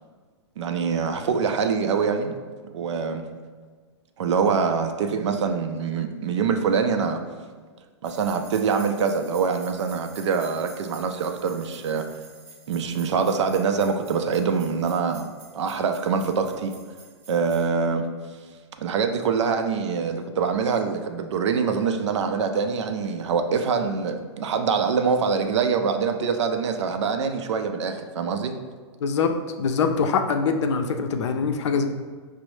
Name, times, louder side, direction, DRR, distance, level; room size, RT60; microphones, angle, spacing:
voice 1, 0.6-2.3 2.7-3.3 4.2-7.2 8.0-12.1 12.7-15.3 15.5-16.7 17.3-18.1 18.8-28.5, right 5 dB, 80° right, 6 dB, 0.4 m, -24 dB
sound 1, 8.0-17.7, right 3 dB, 20° right, 0.6 m, -48 dB
voice 2, 29.0-31.9, left 5 dB, 80° left, 6 dB, 0.4 m, -23 dB
5.2 x 2.0 x 3.1 m, 1.5 s
hypercardioid pair, 145°, 15 cm